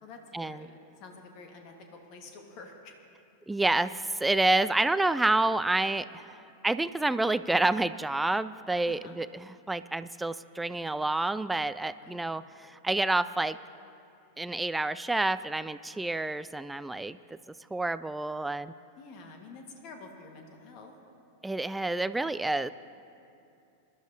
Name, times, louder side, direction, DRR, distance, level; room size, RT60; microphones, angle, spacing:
voice 1, 0.0-2.9 8.9-9.2 12.0-12.3 19.0-20.9, left 3 dB, 40° left, 3 dB, 1.5 m, -49 dB
voice 2, 3.5-13.6 14.4-17.2 17.7-18.7 21.4-22.7, right 2 dB, 5° right, 15 dB, 0.3 m, -28 dB
22.0 x 12.0 x 2.8 m, 2.6 s
figure-of-eight pair, 90°, 0 cm